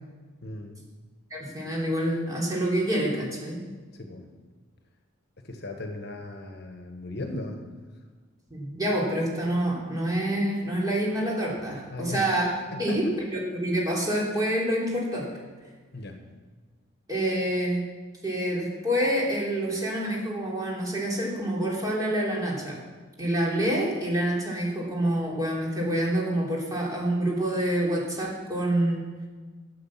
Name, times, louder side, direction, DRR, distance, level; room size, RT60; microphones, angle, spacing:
voice 1, 0.4-0.8 3.9-4.3 5.4-7.6 11.9-12.3 12.7-13.0 15.9-16.2, left 2 dB, 50° left, 5 dB, 1.2 m, -37 dB
voice 2, 1.3-3.7 8.5-12.5 12.8-15.3 17.1-17.8 18.2-22.8 23.2-29.0, right 1 dB, 20° right, -4 dB, 3.1 m, -27 dB
12.5 x 8.5 x 7.3 m, 1.4 s
head